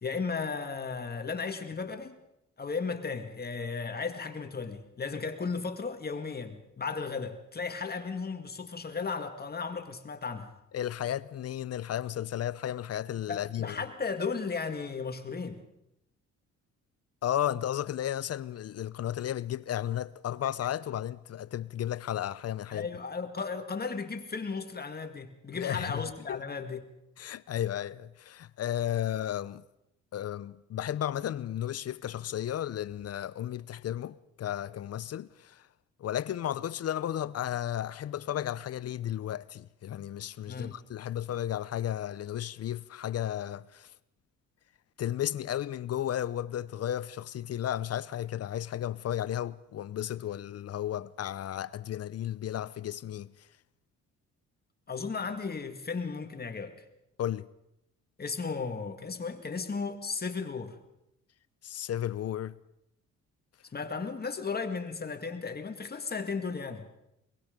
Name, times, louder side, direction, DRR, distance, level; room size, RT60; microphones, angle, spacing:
voice 1, 0.0-2.2 2.6-10.5 13.3-15.6 22.7-26.8 40.5-40.8 54.9-56.8 58.2-60.8 63.7-66.9, left 5 dB, 30° left, 2.1 m, -35 dB
voice 2, 10.7-13.8 17.2-22.9 25.5-26.4 27.2-29.6 30.1-35.6 36.0-43.9 45.0-53.3 57.2-57.5 61.6-62.6, left 11 dB, 55° left, 0.7 m, -34 dB
23.0 x 22.0 x 5.2 m
cardioid pair, 90°, 30 cm